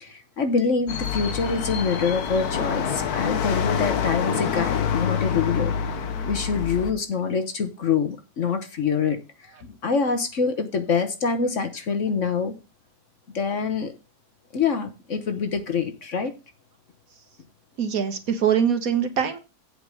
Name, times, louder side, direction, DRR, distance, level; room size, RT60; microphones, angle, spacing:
voice 1, 0.0-5.8 6.3-9.2 9.6-12.5 13.3-13.9 14.5-16.3, left 5 dB, 50° left, 8 dB, 1.2 m, -25 dB
sound 1, 0.9-6.9, left 7 dB, 65° left, 1.4 m, -26 dB
voice 2, 17.8-19.4, right 8 dB, 60° right, 8 dB, 1.5 m, -23 dB
8.3 x 5.1 x 6.4 m, 0.29 s
omnidirectional pair, 1.8 m